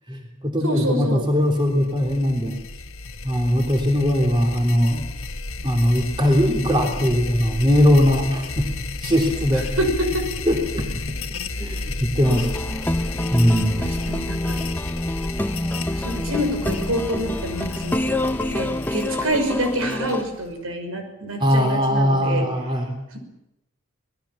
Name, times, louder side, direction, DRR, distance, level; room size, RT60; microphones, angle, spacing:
voice 1, 0.1-2.6 3.2-5.1 5.6-8.7 9.0-9.7 10.4-11.2 11.5-12.5 13.3-13.9 21.4-23.0, equal, 20° right, 2 dB, 3.5 m, -20 dB
voice 2, 0.6-1.3 9.8-10.2 13.8-14.6 15.9-18.0 18.5-22.5, equal, 80° right, 5 dB, 5.8 m, -26 dB
sound 1, 1.4-20.5, left 3 dB, 75° left, 1.6 m, -32 dB
sound 2, 12.2-20.2, left 1 dB, 10° left, 0.8 m, -27 dB
26.5 x 19.5 x 7.3 m, 0.88 s
head